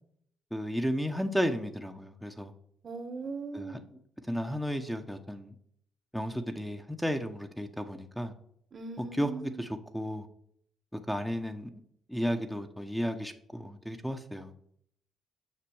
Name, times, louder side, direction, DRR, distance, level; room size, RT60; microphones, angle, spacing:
voice 1, 0.5-2.5 3.5-3.8 4.3-5.5 6.1-8.3 9.0-10.3 11.1-11.7 12.1-14.5, equal, ahead, 0.9 m, -33 dB
voice 2, 2.8-3.9 8.7-9.6, right 4 dB, 45° right, 1.2 m, -39 dB
7.5 x 5.9 x 7.0 m
cardioid pair, 90°, 0 cm